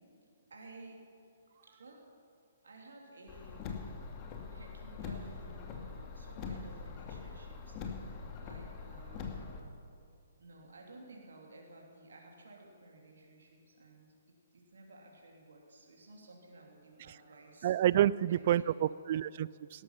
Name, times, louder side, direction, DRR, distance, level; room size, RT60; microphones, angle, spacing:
voice 1, 0.5-1.0 1.6-2.1 2.6-3.7 4.5-9.5 10.4-14.1 14.5-17.7 18.3-19.3, right 2 dB, 65° right, 0 dB, 3.0 m, -55 dB
Car, 3.3-9.6, left 5 dB, 30° left, 2.1 m, -43 dB
voice 2, 17.6-19.8, right 12 dB, 45° right, 21 dB, 0.3 m, -29 dB
18.0 x 13.5 x 5.7 m, 2.4 s
figure-of-eight pair, 125°, 0 cm